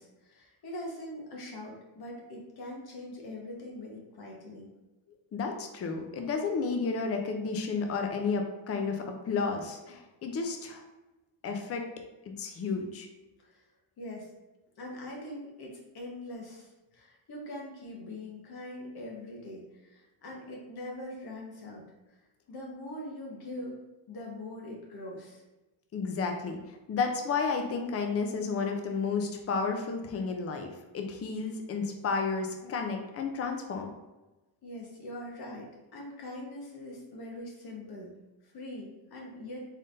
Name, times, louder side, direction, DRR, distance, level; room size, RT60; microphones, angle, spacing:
voice 1, 0.0-4.7 13.4-13.6 14.0-14.3 14.8-21.8 22.5-23.8 24.1-25.4 34.6-38.1 38.4-39.7, left 1 dB, 50° left, -2 dB, 1.3 m, -42 dB
voice 2, 5.3-10.8 11.4-11.9 12.3-13.1 25.9-33.9, left 4 dB, 30° left, 4 dB, 0.6 m, -32 dB
4.0 x 3.5 x 2.6 m, 1.1 s
cardioid pair, 110°, 47 cm